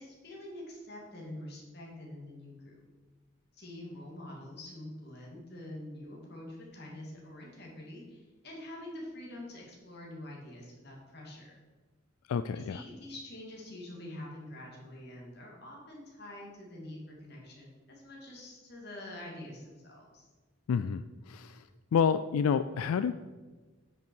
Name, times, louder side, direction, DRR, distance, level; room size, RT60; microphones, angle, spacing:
voice 1, 0.0-2.8 3.5-11.6 12.5-20.3, left 1 dB, 50° left, -2 dB, 2.4 m, -46 dB
voice 2, 12.3-12.8 20.7-21.6 21.9-23.1, left 7 dB, 90° left, 12 dB, 0.3 m, -29 dB
9.3 x 5.9 x 4.6 m, 1.3 s
head